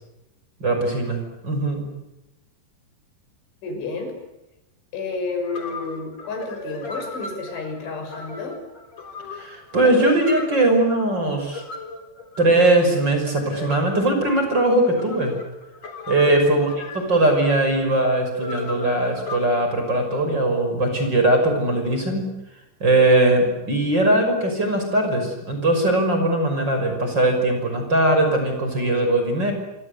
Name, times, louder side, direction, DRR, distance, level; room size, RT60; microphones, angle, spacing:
voice 1, 0.6-1.8 9.3-11.6 12.4-15.3 16.1-16.7 16.9-22.3 22.8-29.5, right 1 dB, 25° right, 4 dB, 6.2 m, -20 dB
voice 2, 3.6-4.1 4.9-8.6 16.3-16.6, left 3 dB, 85° left, 4 dB, 8.8 m, -31 dB
sound 1, 5.1-5.2 5.5-19.4, left 2 dB, 40° left, 4.6 m, -36 dB
27.0 x 25.5 x 8.3 m, 0.93 s
omnidirectional pair, 5.3 m